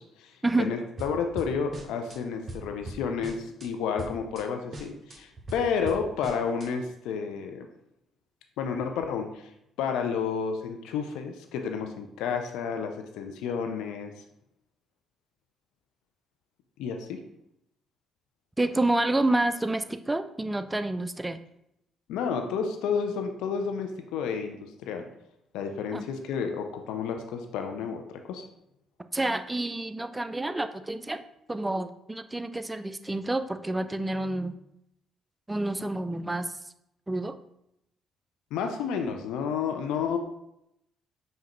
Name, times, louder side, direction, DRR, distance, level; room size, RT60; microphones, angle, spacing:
voice 1, 0.0-7.7 8.6-9.5 9.8-14.1 16.8-17.2 22.1-25.1 25.5-28.0 28.3-28.4 38.5-40.2, left 6 dB, 70° left, 5 dB, 0.4 m, -31 dB
sound 1, 1.0-2.2 2.5-3.7 4.0-4.4 4.7-6.7, right 1 dB, 35° right, 0.8 m, -40 dB
voice 2, 18.6-21.4 25.9-26.1 29.1-31.2 31.5-34.5 35.5-36.5 37.1-37.4, right 2 dB, 15° right, 10 dB, 0.3 m, -28 dB
5.4 x 2.2 x 3.0 m, 0.79 s
hypercardioid pair, 45°, 0 cm